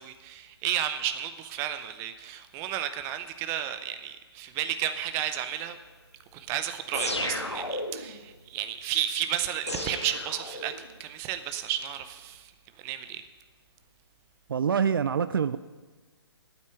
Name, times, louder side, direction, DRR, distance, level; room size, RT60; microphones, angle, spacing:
voice 1, 0.0-5.8 6.3-12.5 12.8-13.2, right 11 dB, 20° right, 10 dB, 0.7 m, -32 dB
sound 1, 6.9-8.2 9.7-11.0, left 1 dB, 85° left, 1.6 m, -33 dB
voice 2, 14.5-15.6, right 7 dB, 55° right, 14 dB, 0.5 m, -25 dB
9.1 x 8.4 x 9.0 m, 1.3 s
figure-of-eight pair, 135°, 14 cm